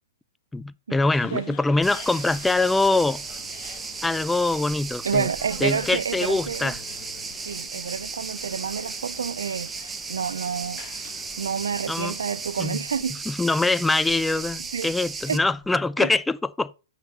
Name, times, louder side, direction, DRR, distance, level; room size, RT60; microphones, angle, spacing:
voice 1, 0.5-3.2 4.0-5.3 5.6-6.8 11.9-12.2 12.6-12.8 13.3-16.8, left 3 dB, 5° left, 0.4 m, -24 dB
sound 1, 1.0-12.9, left 10 dB, 40° left, 1.1 m, -47 dB
sound 2, 1.8-15.4, right 5 dB, 15° right, 0.9 m, -35 dB
sound 3, 3.8-15.8, left 5 dB, 85° left, 2.5 m, -55 dB
voice 2, 5.0-6.7 7.5-10.9 11.4-13.2 14.7-14.9 15.3-15.4 16.0-16.1, right 6 dB, 80° right, 0.4 m, -29 dB
7.1 x 5.9 x 5.2 m
hypercardioid pair, 115°, 0 cm